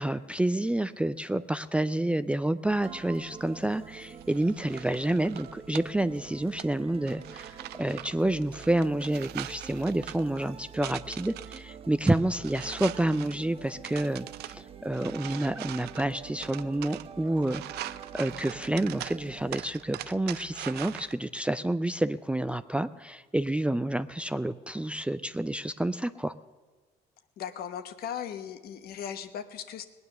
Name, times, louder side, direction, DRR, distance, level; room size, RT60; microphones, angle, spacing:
voice 1, 0.0-26.3, right 1 dB, 5° right, 12 dB, 0.4 m, -29 dB
sound 1, 2.7-19.6, right 7 dB, 35° right, 0.9 m, -46 dB
sound 2, 4.2-21.1, right 14 dB, 75° right, 0.5 m, -43 dB
voice 2, 27.4-29.8, left 8 dB, 65° left, 10 dB, 1.2 m, -37 dB
19.0 x 9.6 x 6.7 m, 1.4 s
cardioid pair, 110°, 17 cm